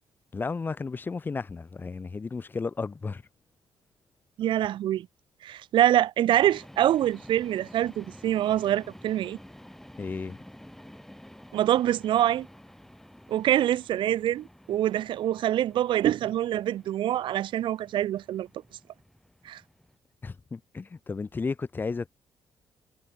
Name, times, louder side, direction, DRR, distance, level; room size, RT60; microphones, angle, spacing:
voice 1, 0.3-3.2 10.0-10.4 20.2-22.1, left 4 dB, 25° left, 0.5 m, -33 dB
voice 2, 4.4-5.1 5.4-9.4 11.5-12.5 13.3-18.5 19.4-19.6, right 12 dB, 70° right, 0.5 m, -25 dB
sound 1, 6.3-20.0, left 1 dB, 5° left, 4.7 m, -51 dB
cardioid pair, 110°, 9 cm